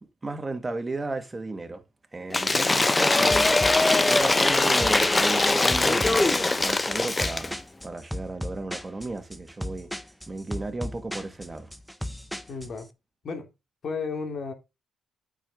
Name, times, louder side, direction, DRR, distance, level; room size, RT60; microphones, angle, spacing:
voice 1, 0.2-1.8 2.1-9.9 10.3-11.7, right 2 dB, 20° right, 1.9 m, -34 dB
Cheering / Applause / Crowd, 2.3-7.5, left 2 dB, 20° left, 0.8 m, -22 dB
sound 1, 3.3-12.8, equal, ahead, 1.0 m, -36 dB
voice 2, 12.5-12.9 13.2-13.5 13.8-14.5, left 4 dB, 55° left, 2.9 m, -34 dB
8.9 x 6.8 x 3.8 m
cardioid pair, 90°, 0 cm